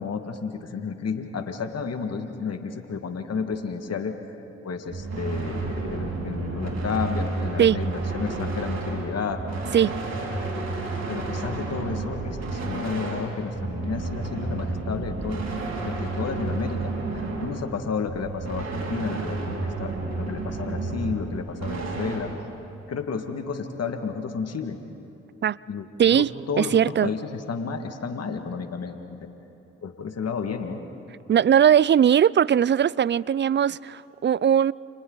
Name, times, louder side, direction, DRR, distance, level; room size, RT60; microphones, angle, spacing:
voice 1, 0.0-4.1 4.6-9.4 10.5-10.6 11.1-15.4 15.9-22.3 22.9-24.8 25.7-29.3 29.8-30.8, left 5 dB, 55° left, 2.0 m, -32 dB
sound 1, 4.9-22.2, right 3 dB, 60° right, 4.9 m, -31 dB
voice 2, 26.0-26.3 26.6-27.1 31.3-34.7, right 9 dB, 40° right, 0.4 m, -19 dB
29.5 x 29.5 x 4.0 m
hypercardioid pair, 40°, 29 cm